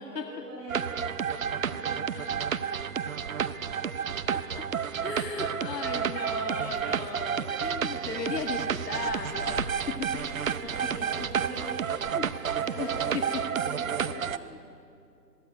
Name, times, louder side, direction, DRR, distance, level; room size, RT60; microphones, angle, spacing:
voice 1, 0.0-2.2 10.5-12.0 12.5-13.1 13.4-14.2, right 1 dB, 5° right, -13 dB, 0.8 m, -43 dB
sound 1, 0.7-14.4, right 7 dB, 55° right, 0.8 m, -31 dB
voice 2, 2.1-2.7 3.8-10.1 11.2-11.3 12.1-12.3 12.8-12.9 13.1-13.4 14.3-14.5, left 5 dB, 70° left, 2 dB, 2.0 m, -37 dB
sound 2, 6.6-13.5, left 3 dB, 30° left, 1.4 m, -48 dB
21.5 x 14.5 x 10.0 m, 2.5 s
hypercardioid pair, 170°, 50 cm